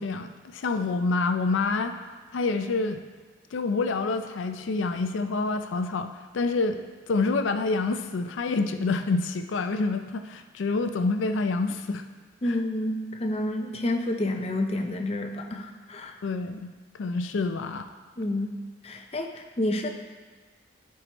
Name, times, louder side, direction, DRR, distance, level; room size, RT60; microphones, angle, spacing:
voice 1, 0.0-2.0 2.3-3.0 3.5-12.0 12.4-12.6 16.2-17.9, left 3 dB, 80° left, 8 dB, 0.4 m, -27 dB
voice 2, 12.4-16.1 18.2-18.5 18.8-19.9, left 1 dB, 30° left, 3 dB, 0.6 m, -29 dB
13.0 x 4.7 x 3.0 m, 1.5 s
head